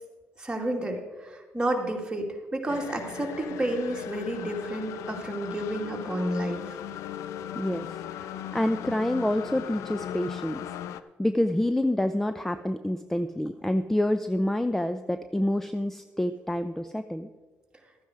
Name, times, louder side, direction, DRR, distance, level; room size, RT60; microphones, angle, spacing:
voice 1, 0.4-6.8, right 1 dB, 15° right, 1 dB, 2.3 m, -31 dB
sound 1, 2.7-11.0, left 10 dB, 85° left, 0.5 m, -38 dB
voice 2, 7.5-7.9 8.1-8.3 8.5-10.6 11.0-17.3, left 1 dB, 5° left, 10 dB, 0.5 m, -27 dB
13.0 x 9.3 x 4.9 m, 1.3 s
cardioid pair, 75°, 5 cm